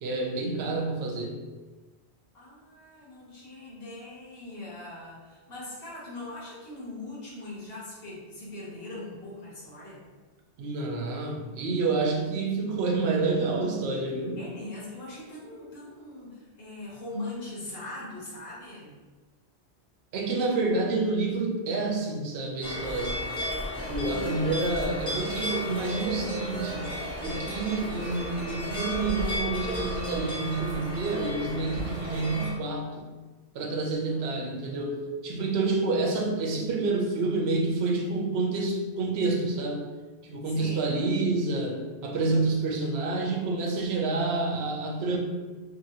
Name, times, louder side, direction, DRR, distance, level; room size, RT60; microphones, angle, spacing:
voice 1, 0.0-1.4 10.6-14.4 20.1-23.2 23.9-26.9 27.2-33.1 33.5-39.8 40.2-45.2, right 3 dB, 70° right, 0 dB, 0.8 m, -28 dB
voice 2, 2.3-10.0 14.4-19.0 24.0-24.7 34.1-34.2 40.4-40.9, left 2 dB, 60° left, -8 dB, 1.3 m, -41 dB
sound 1, 22.6-32.5, left 1 dB, 5° left, 0.8 m, -33 dB
2.8 x 2.7 x 2.6 m, 1.3 s
omnidirectional pair, 1.1 m